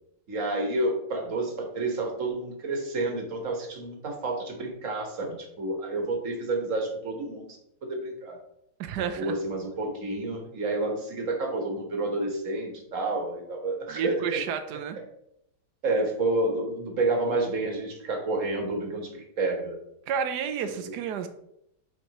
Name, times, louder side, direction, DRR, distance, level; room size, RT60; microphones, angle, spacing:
voice 1, 0.3-7.5 7.8-8.4 9.0-14.4 15.8-19.8, right 2 dB, 50° right, 2 dB, 1.6 m, -29 dB
voice 2, 8.8-9.3 13.9-15.0 20.1-21.3, right 7 dB, 80° right, 9 dB, 1.2 m, -31 dB
8.0 x 4.7 x 3.0 m, 0.78 s
omnidirectional pair, 1.8 m